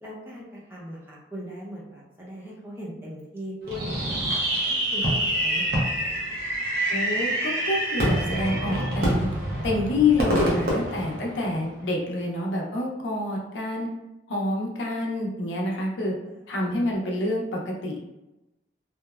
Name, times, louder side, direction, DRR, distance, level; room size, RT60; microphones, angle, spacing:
voice 1, 0.0-6.4 16.2-16.4, equal, 10° right, -5 dB, 0.5 m, -40 dB
Fireworks, 3.7-11.8, right 1 dB, 55° right, 0.6 m, -26 dB
voice 2, 6.9-9.3 9.6-13.9 14.3-16.1 16.5-18.0, left 2 dB, 75° left, -1 dB, 0.6 m, -27 dB
2.8 x 2.1 x 2.2 m, 0.99 s
head